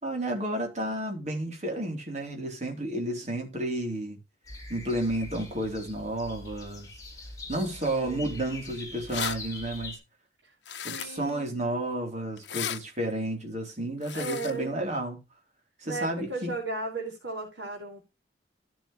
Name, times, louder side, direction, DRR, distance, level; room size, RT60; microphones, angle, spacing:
voice 1, 0.0-4.2 4.7-6.9 7.5-10.0 10.8-15.2 15.8-16.6, right 1 dB, 40° right, 3.6 m, -31 dB
sound 1, 4.4-10.0, left 2 dB, 20° left, 4.2 m, -43 dB
voice 2, 8.0-8.5 10.4-10.5 10.8-11.5 14.1-14.8 15.8-18.0, right 3 dB, 90° right, 4.7 m, -36 dB
sound 2, 9.1-9.4 10.6-11.3 12.4-12.8 14.0-14.5, left 9 dB, 75° left, 0.9 m, -34 dB
14.0 x 7.6 x 3.2 m
head